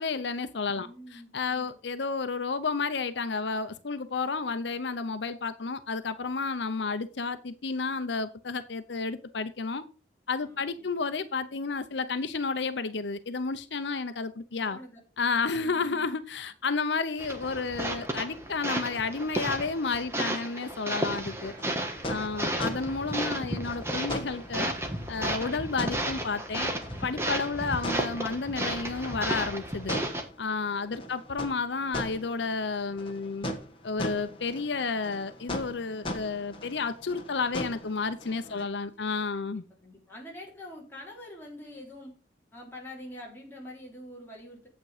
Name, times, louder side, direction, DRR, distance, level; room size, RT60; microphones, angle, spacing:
voice 1, 0.0-0.9 1.1-9.8 10.3-14.8 15.2-21.5 22.1-24.7 25.1-26.7 27.0-30.0 30.4-33.5 33.8-39.6, left 4 dB, 80° left, 0.7 m, -31 dB
voice 2, 0.7-1.8 10.4-10.9 14.7-15.0 15.5-16.1 27.6-27.7 38.4-38.8 39.3-42.2 42.5-44.7, left 1 dB, 10° left, 3.4 m, -47 dB
sound 1, 17.2-30.2, right 1 dB, 15° right, 1.4 m, -33 dB
sound 2, 21.5-38.7, left 1 dB, 30° left, 1.7 m, -40 dB
8.8 x 8.2 x 4.9 m
head